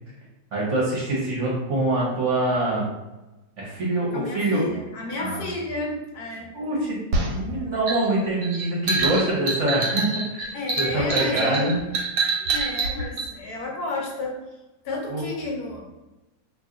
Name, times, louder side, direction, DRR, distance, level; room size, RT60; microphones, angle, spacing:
voice 1, 0.5-2.8 3.6-4.6 5.2-5.4 6.5-7.0 7.3-10.2 10.8-11.8 15.1-15.2, right 2 dB, 50° right, -5 dB, 1.0 m, -24 dB
voice 2, 4.1-6.8 10.5-11.8 12.5-14.4 14.8-15.8, left 2 dB, 70° left, 0 dB, 1.0 m, -31 dB
sound 1, 7.1-13.3, right 3 dB, 90° right, 1.4 m, -26 dB
2.8 x 2.7 x 3.7 m, 1.1 s
omnidirectional pair, 2.0 m